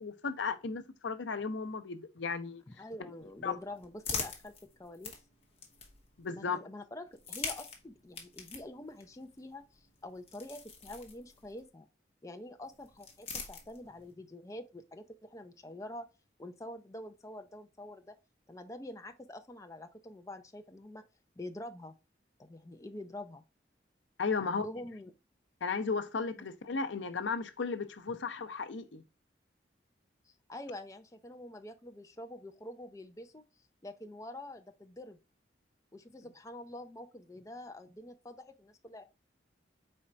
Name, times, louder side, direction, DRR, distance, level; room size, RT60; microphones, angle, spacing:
voice 1, 0.0-2.6 3.4-3.6 6.2-6.6 24.2-24.7 25.6-29.0, left 4 dB, 80° left, 0.6 m, -35 dB
voice 2, 2.7-4.5 4.8-5.2 6.3-11.8 12.2-16.1 16.4-18.1 18.5-21.0 21.4-21.9 22.4-23.4 24.4-25.1 28.1-28.2 30.2-33.4 33.8-35.2 35.9-39.0, left 1 dB, 15° left, 0.4 m, -46 dB
sound 1, 3.2-6.2 7.1-11.7 12.6-14.1, left 5 dB, 35° left, 1.1 m, -44 dB
4.3 x 4.2 x 2.4 m
head